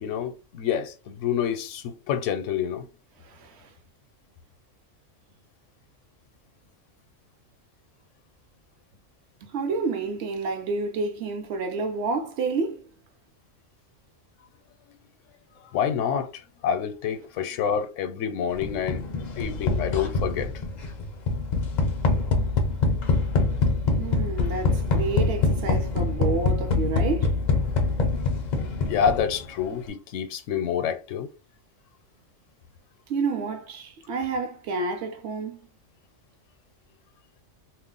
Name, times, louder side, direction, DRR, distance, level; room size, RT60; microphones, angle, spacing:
voice 1, 0.0-2.9 15.7-16.3 16.6-19.0 19.4-20.5 28.8-31.3, left 8 dB, 75° left, 0.9 m, -27 dB
voice 2, 9.4-12.9 24.0-27.4 33.1-35.6, right 4 dB, 65° right, 0.8 m, -29 dB
sound 1, 18.6-29.5, left 3 dB, 60° left, 0.5 m, -25 dB
2.4 x 2.0 x 3.7 m
omnidirectional pair, 1.3 m